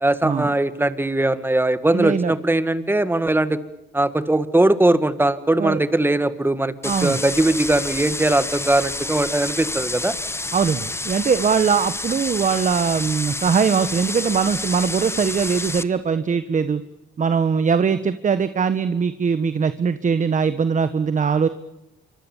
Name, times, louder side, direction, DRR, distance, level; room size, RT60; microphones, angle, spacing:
voice 1, 0.0-3.6 3.9-10.1, right 2 dB, 10° right, 13 dB, 1.9 m, -20 dB
voice 2, 1.9-2.3 5.6-5.8 6.8-7.2 10.5-16.8 17.2-21.5, right 6 dB, 40° right, 12 dB, 1.3 m, -21 dB
sound 1, 6.8-15.8, left 2 dB, 15° left, 1.3 m, -29 dB
27.5 x 24.5 x 7.4 m, 0.94 s
cardioid pair, 90°, 20 cm